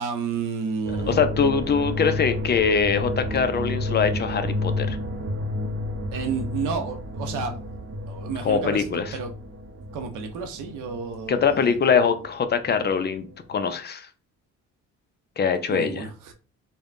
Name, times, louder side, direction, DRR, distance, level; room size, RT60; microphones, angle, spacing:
voice 1, 0.0-1.2 6.1-7.6 8.1-9.3 9.9-11.8 15.7-16.3, right 5 dB, 85° right, 0.7 m, -31 dB
sound 1, 0.8-13.0 13.2-13.7, left 1 dB, 45° right, 0.7 m, -31 dB
voice 2, 1.1-5.0 8.4-9.1 11.3-14.1 15.4-16.1, left 6 dB, 35° left, 0.4 m, -23 dB
3.3 x 2.2 x 2.4 m
cardioid pair, 90°, 30 cm